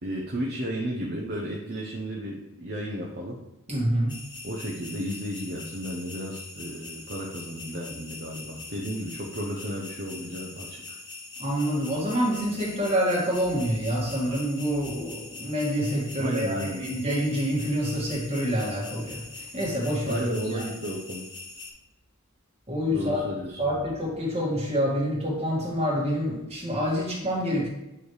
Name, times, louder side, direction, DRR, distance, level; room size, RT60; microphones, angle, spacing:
voice 1, 0.0-3.4 4.4-11.0 16.2-16.8 20.1-21.3 22.9-23.6, equal, 45° right, -1 dB, 0.8 m, -33 dB
voice 2, 3.7-4.2 11.4-20.2 20.5-20.6 22.7-23.3 23.6-27.7, equal, 30° right, -4 dB, 2.2 m, -27 dB
sound 1, 4.1-21.7, left 3 dB, 20° left, 1.1 m, -42 dB
9.0 x 3.3 x 4.8 m, 0.93 s
head